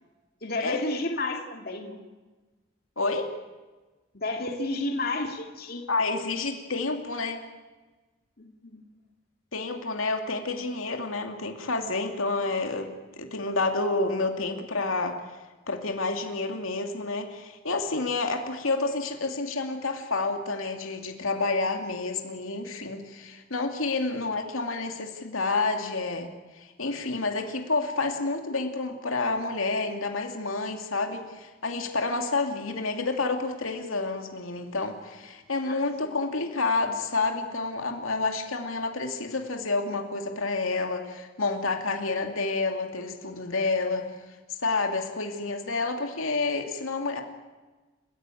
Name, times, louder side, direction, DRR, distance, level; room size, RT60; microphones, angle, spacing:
voice 1, 0.4-2.0 4.1-5.8 8.4-8.8 35.6-35.8, left 2 dB, 45° left, 3 dB, 2.6 m, -31 dB
voice 2, 3.0-3.3 5.9-7.4 9.5-12.9 13.2-15.2 15.7-44.1 44.6-47.2, left 3 dB, 85° left, 4 dB, 2.5 m, -29 dB
30.0 x 15.0 x 9.2 m, 1.2 s
head